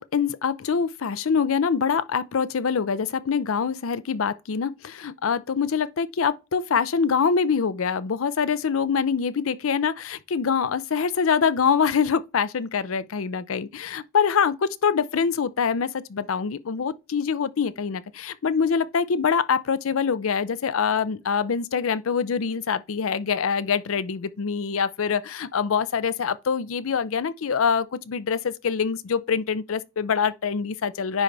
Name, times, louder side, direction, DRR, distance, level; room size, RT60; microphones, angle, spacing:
voice 1, 0.0-31.2, left 6 dB, 80° left, 0.5 m, -24 dB
9.8 x 3.9 x 3.3 m
head